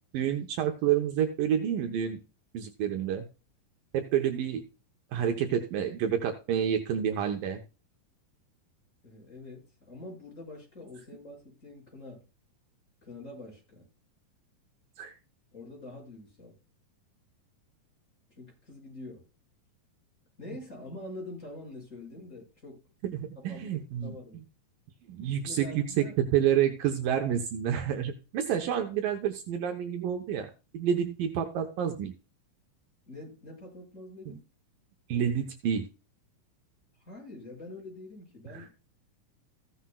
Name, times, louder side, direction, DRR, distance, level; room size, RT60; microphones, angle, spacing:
voice 1, 0.1-2.2 2.5-3.2 3.9-4.6 5.1-7.6 15.0-15.1 23.0-24.1 25.1-30.5 30.7-32.1 34.3-34.4 35.1-35.9 38.5-38.6, right 9 dB, 75° right, 5 dB, 2.6 m, -29 dB
voice 2, 9.0-12.2 13.0-13.9 15.5-16.5 18.4-19.2 20.4-22.8 23.3-24.4 25.4-26.2 33.0-34.4 37.0-38.7, left 2 dB, 20° left, -2 dB, 6.8 m, -45 dB
15.0 x 10.0 x 2.3 m, 0.31 s
omnidirectional pair, 4.2 m